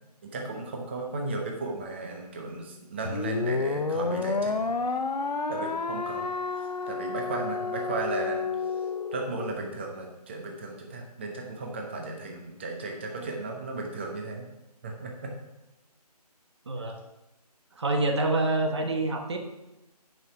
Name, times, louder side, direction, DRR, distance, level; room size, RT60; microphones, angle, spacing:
voice 1, 0.3-4.7 5.5-6.3 6.6-8.5 9.1-14.5 14.8-15.3, right 3 dB, 15° right, 1 dB, 0.9 m, -35 dB
sound 1, 3.0-9.6, left 4 dB, 85° left, 0.9 m, -30 dB
voice 2, 16.7-17.0 17.8-19.4, right 2 dB, 40° right, 4 dB, 1.2 m, -26 dB
9.8 x 5.5 x 5.9 m, 0.98 s
figure-of-eight pair, 165°, 21 cm